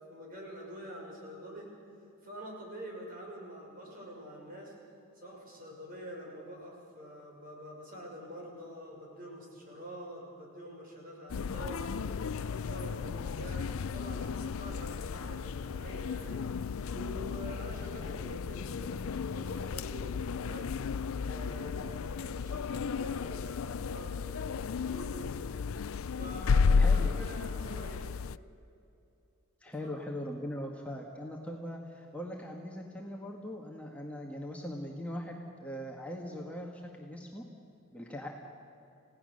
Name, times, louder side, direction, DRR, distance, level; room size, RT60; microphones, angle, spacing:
voice 1, 0.0-1.7 2.2-4.7 5.1-11.9 12.3-16.4 16.9-20.8 21.2-25.4 26.2-28.0 29.8-29.9, equal, 40° right, -1 dB, 6.1 m, -46 dB
sound 1, 11.3-28.4, left 5 dB, 75° left, 0.5 m, -33 dB
voice 2, 26.7-27.1 29.6-37.4 37.9-38.3, equal, 5° left, -1 dB, 1.6 m, -40 dB
29.5 x 17.0 x 6.6 m, 2.7 s
head